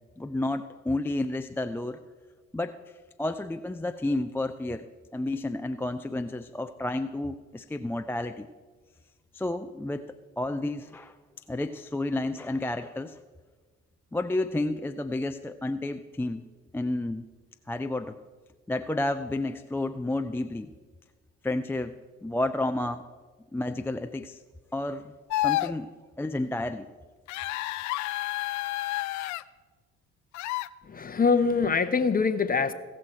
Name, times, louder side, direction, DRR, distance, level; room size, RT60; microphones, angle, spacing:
voice 1, 0.2-2.0 2.5-2.8 3.2-4.9 5.1-8.5 9.3-10.0 10.4-11.2 11.5-13.2 14.1-16.4 16.7-17.2 17.7-18.2 18.7-20.7 21.4-21.9 22.2-23.1 23.5-24.4 24.7-25.1 25.4-25.9 26.2-26.9, left 2 dB, 5° left, 8 dB, 0.4 m, -31 dB
sound 1, 25.3-25.7 27.3-29.4 30.3-30.7, left 17 dB, 65° left, 0.4 m, -29 dB
voice 2, 30.8-32.7, left 5 dB, 30° left, 12 dB, 0.8 m, -24 dB
16.5 x 6.4 x 4.4 m, 1.4 s
hypercardioid pair, 50°, 31 cm